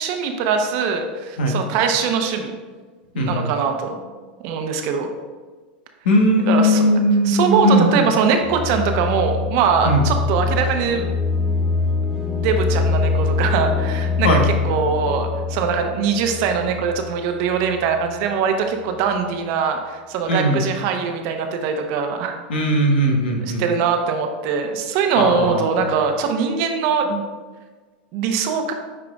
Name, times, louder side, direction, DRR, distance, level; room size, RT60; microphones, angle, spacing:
voice 1, 0.0-2.6 3.1-4.0 4.4-5.1 6.5-11.0 12.0-22.4 23.4-27.2 28.1-28.7, right 6 dB, 55° right, 5 dB, 0.8 m, -22 dB
voice 2, 3.1-3.5 6.0-8.0 9.8-10.0 14.2-14.5 20.3-20.7 22.5-23.6 25.2-25.9, equal, 80° left, 2 dB, 1.2 m, -18 dB
sound 1, 8.4-18.2, left 4 dB, 10° right, 0.8 m, -24 dB
8.5 x 4.8 x 2.4 m, 1.4 s
hypercardioid pair, 105°, 6 cm